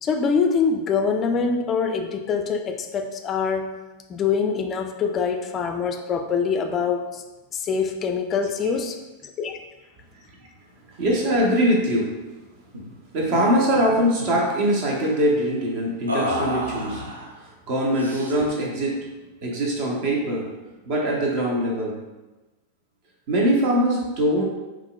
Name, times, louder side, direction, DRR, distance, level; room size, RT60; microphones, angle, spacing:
voice 1, 0.0-3.7 4.1-7.2 7.5-9.0 9.4-9.6, left 5 dB, 25° left, 5 dB, 0.3 m, -24 dB
voice 2, 11.0-12.1 13.1-17.0 17.4-19.0 19.4-20.4 20.9-21.9 23.3-24.4, equal, 45° right, -2 dB, 0.9 m, -22 dB
sound 1, 12.7-12.9 13.2-13.4 13.7-14.5 16.1-17.3 18.0-18.6, equal, 75° right, 0.5 m, -30 dB
5.4 x 2.4 x 2.3 m, 1.1 s
figure-of-eight pair, 90°, 0 cm